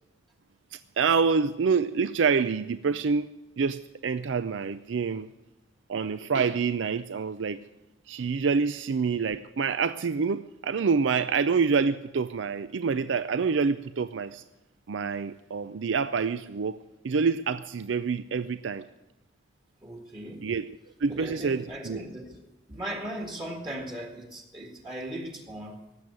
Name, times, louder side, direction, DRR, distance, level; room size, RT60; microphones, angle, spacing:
voice 1, 0.7-3.3 3.6-5.3 5.9-7.6 8.1-14.4 14.9-16.8 17.0-18.8 20.4-22.0, right 5 dB, 85° right, 0.5 m, -27 dB
voice 2, 19.8-20.5 21.1-22.4 22.7-25.8, right 1 dB, 25° right, 1.8 m, -38 dB
18.0 x 7.7 x 9.5 m
head